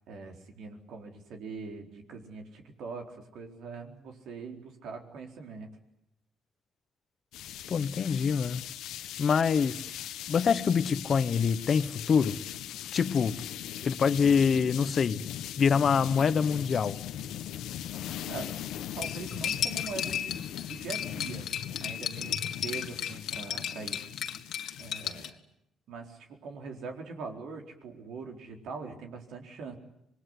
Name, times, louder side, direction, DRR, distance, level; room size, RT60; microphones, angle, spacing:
voice 1, 0.1-5.7 18.3-18.6 19.0-21.5 21.8-24.1 24.8-25.4 25.9-29.8, right 4 dB, 80° right, 4.3 m, -42 dB
sound 1, 7.3-25.3, left 11 dB, 90° left, 1.3 m, -40 dB
voice 2, 7.7-8.6 9.2-9.8 10.3-12.4 12.9-13.4 13.8-17.0, left 6 dB, 50° left, 1.0 m, -25 dB
Cutlery silverware, 19.0-25.3, left 9 dB, 70° left, 2.1 m, -34 dB
26.5 x 21.0 x 9.9 m
cardioid pair, 90°, 0 cm